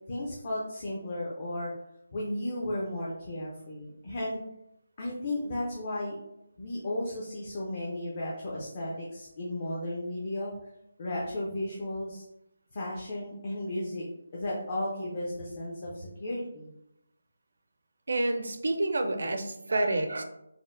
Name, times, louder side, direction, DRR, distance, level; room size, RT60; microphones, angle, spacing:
voice 1, 0.1-1.7 2.1-4.4 5.0-6.2 6.6-10.5 11.0-12.2 12.7-14.1 14.3-16.7, left 1 dB, 30° left, -5 dB, 0.5 m, -34 dB
voice 2, 18.1-20.2, right 2 dB, 65° right, 6 dB, 0.4 m, -28 dB
4.1 x 2.0 x 2.5 m, 0.84 s
figure-of-eight pair, 170°, 0 cm